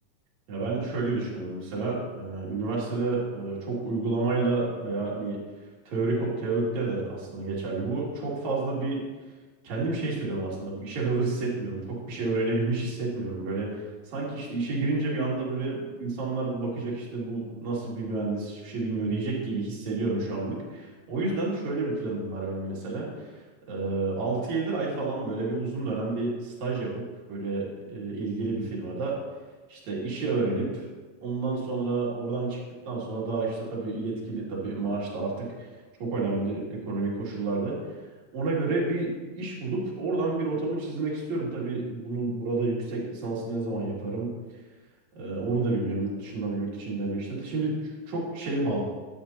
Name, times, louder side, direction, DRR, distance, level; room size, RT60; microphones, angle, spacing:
voice 1, 0.5-5.4 5.9-9.0 9.6-23.3 23.7-27.0 27.3-29.2 29.7-30.9 31.2-32.6 32.8-35.7 36.0-37.8 38.3-44.3 45.1-48.8, right 3 dB, 50° right, -5 dB, 2.9 m, -30 dB
12.5 x 9.7 x 2.8 m, 1.3 s
omnidirectional pair, 5.3 m